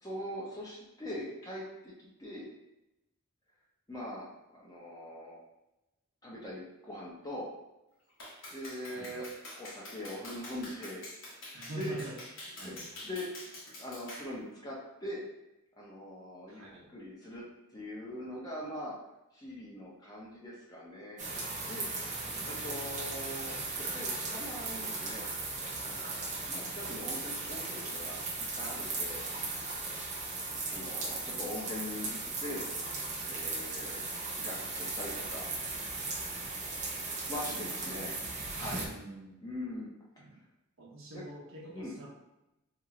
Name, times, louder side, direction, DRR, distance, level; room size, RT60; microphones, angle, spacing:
voice 1, 0.0-1.9 2.2-2.5 3.9-4.3 4.5-5.4 6.2-7.5 8.5-9.3 9.6-11.0 11.4-12.0 12.6-12.7 13.0-13.3 13.8-15.2 15.8-16.6 16.9-17.4 17.7-18.9 19.3-21.2 21.7-21.9 22.4-23.6 23.9-25.2 25.8-29.2 30.7-32.6 33.2-34.0 34.4-35.5 37.3-38.1 38.5-38.9 39.4-39.9 41.7-42.0, left 1 dB, 15° left, -5 dB, 0.5 m, -42 dB
Clapping, 8.2-14.3, left 1 dB, 60° left, 0.9 m, -46 dB
voice 2, 11.5-12.2 12.6-12.8 16.5-16.9 22.3-22.8 26.8-27.0 37.3-38.1 38.9-39.5 40.2-40.4 40.8-42.1, right 2 dB, 65° right, -3 dB, 0.7 m, -46 dB
sound 1, 21.2-38.9, right 3 dB, 35° right, 0.4 m, -37 dB
2.9 x 2.0 x 3.6 m, 0.92 s
head